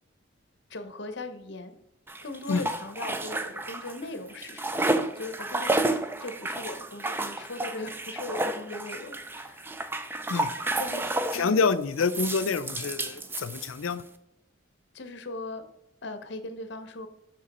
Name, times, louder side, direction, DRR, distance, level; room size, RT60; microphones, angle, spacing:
voice 1, 0.7-1.8 2.2-4.7 5.1-5.9 6.2-9.8 10.8-11.0 11.3-11.6 14.9-15.7 16.0-17.1, left 2 dB, 55° left, 9 dB, 0.8 m, -39 dB
sound 1, 2.1-4.0 4.3-11.5 12.0-14.0, right 2 dB, 10° right, 0.3 m, -31 dB
voice 2, 11.3-14.0, left 4 dB, 90° left, 13 dB, 0.5 m, -27 dB
7.5 x 6.0 x 4.2 m, 0.82 s
head